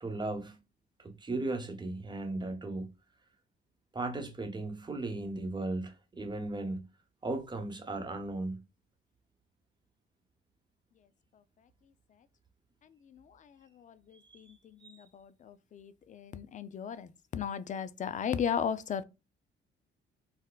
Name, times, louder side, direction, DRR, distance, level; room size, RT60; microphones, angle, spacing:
voice 1, 0.0-0.6 1.0-2.9 3.9-6.9 7.2-8.6 14.1-14.5 14.8-15.0, right 2 dB, 20° right, 0.9 m, -36 dB
voice 2, 15.7-17.1 17.3-19.0, left 8 dB, 40° left, 0.4 m, -34 dB
4.0 x 2.1 x 2.2 m
cardioid pair, 90°, 20 cm